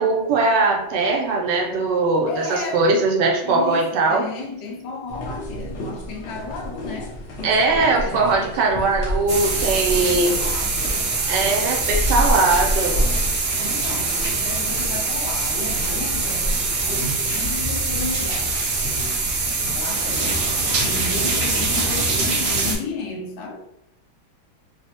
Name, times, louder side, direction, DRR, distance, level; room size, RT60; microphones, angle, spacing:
voice 1, 0.0-4.3 7.4-10.3 11.3-13.0, right 3 dB, 80° right, 1 dB, 1.2 m, -20 dB
voice 2, 2.3-2.9 3.4-8.3 9.5-11.0 13.6-18.5 19.7-23.7, left 3 dB, 85° left, 1 dB, 1.3 m, -33 dB
sound 1, 5.1-22.4, equal, 65° left, 0.7 m, -31 dB
sound 2, 9.3-22.8, right 3 dB, 65° right, 0.7 m, -23 dB
3.3 x 2.0 x 2.7 m, 0.80 s
omnidirectional pair, 1.9 m